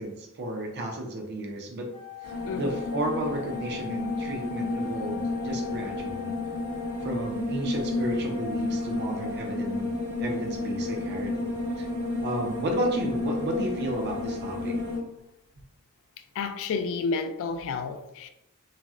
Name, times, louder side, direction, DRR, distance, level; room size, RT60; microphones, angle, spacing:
voice 1, 0.0-1.9 2.2-6.3 7.0-9.9 10.2-11.9 12.2-14.7, right 1 dB, 50° right, 0.5 m, -33 dB
Wind instrument woodwind instrument, 1.9-7.4, left 16 dB, 25° left, 0.6 m, -42 dB
sound 1, 2.2-15.0, left 2 dB, 70° right, 1.2 m, -31 dB
voice 2, 2.4-2.8 16.4-18.3, left 4 dB, 60° left, 0.3 m, -31 dB
4.0 x 2.1 x 2.3 m
head